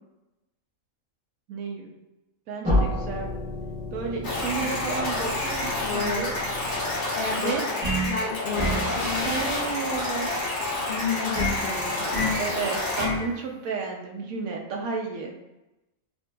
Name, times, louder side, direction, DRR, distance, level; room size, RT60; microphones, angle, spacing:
voice 1, 1.5-1.9 2.5-3.3 3.9-6.4 7.4-7.7 9.2-10.3 12.4-15.3, right 5 dB, 90° right, 0 dB, 1.0 m, -32 dB
sound 1, 2.6-7.4, left 1 dB, 10° right, 0.5 m, -31 dB
sound 2, 4.2-13.1, left 2 dB, 40° left, 0.9 m, -29 dB
voice 2, 4.5-6.6 7.1-7.6 8.0-9.3 9.8-10.3 10.9-12.5, left 5 dB, 65° left, -3 dB, 0.6 m, -33 dB
sound 3, 7.8-8.2 8.6-8.9 11.3-11.6 12.1-12.4 13.0-13.3, equal, 35° right, 0.9 m, -27 dB
3.8 x 2.5 x 2.2 m, 0.98 s
omnidirectional pair, 1.4 m